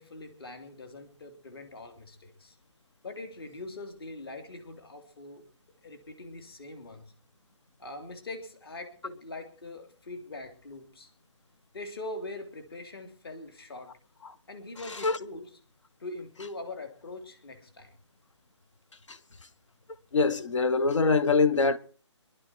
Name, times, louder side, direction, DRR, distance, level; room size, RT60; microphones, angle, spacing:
voice 1, 0.0-2.5 3.0-5.4 5.8-7.0 7.8-11.1 11.7-13.9 14.5-15.5 16.0-17.9, left 2 dB, 55° left, 3.3 m, -42 dB
voice 2, 20.1-21.8, left 4 dB, 80° left, 1.3 m, -23 dB
24.0 x 11.5 x 4.5 m
hypercardioid pair, 170°, 15 cm